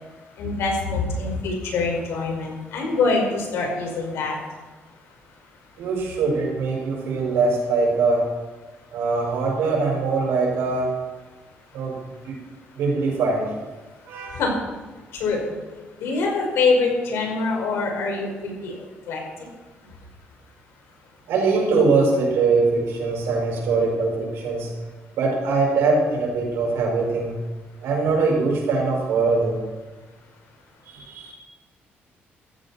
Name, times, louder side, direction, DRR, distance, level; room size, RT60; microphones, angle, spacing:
voice 1, 0.4-4.4 14.3-14.5 15.2-15.5 16.0-18.8 19.1-19.2, left 3 dB, 85° left, 0 dB, 5.3 m, -24 dB
voice 2, 5.8-8.3 8.9-10.9 11.7-12.0 12.3-12.4 12.8-13.5 14.1-14.4 21.3-24.7 25.2-27.4 27.8-29.6 30.9-31.3, right 4 dB, 90° right, -1 dB, 5.8 m, -22 dB
15.5 x 15.0 x 4.4 m, 1.3 s
cardioid pair, 130°, 4 cm